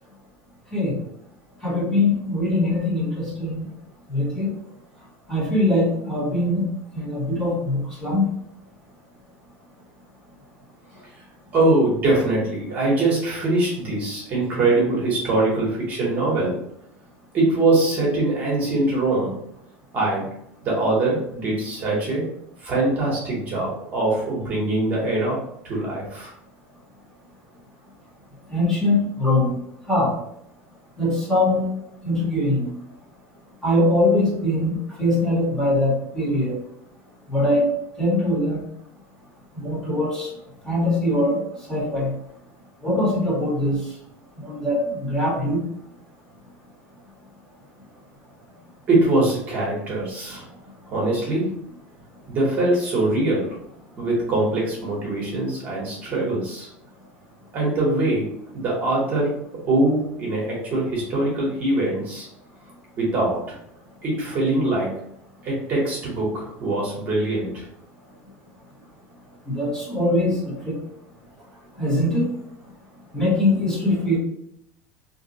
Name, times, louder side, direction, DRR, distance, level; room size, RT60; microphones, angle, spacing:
voice 1, 1.6-3.6 4.1-4.5 5.3-6.6 6.9-8.2 28.5-29.5 29.9-30.1 31.0-31.6 32.0-32.7 33.6-36.5 37.3-37.7 38.0-38.6 39.6-40.3 40.7-41.4 41.7-42.1 42.8-43.8 44.4-44.8 45.1-45.6 69.5-70.3 70.6-70.7 71.8-72.3 73.1-74.2, left 1 dB, 10° left, -6 dB, 1.0 m, -22 dB
voice 2, 11.5-16.6 17.3-19.4 19.9-20.3 20.6-22.3 22.6-26.3 48.9-50.4 50.9-51.5 52.3-53.6 54.0-56.7 57.5-58.3 58.5-59.3 59.7-62.3 63.0-63.6 64.0-64.9 65.4-67.6, right 2 dB, 30° right, -4 dB, 0.9 m, -22 dB
2.6 x 2.2 x 3.9 m, 0.74 s
cardioid pair, 175°, 7 cm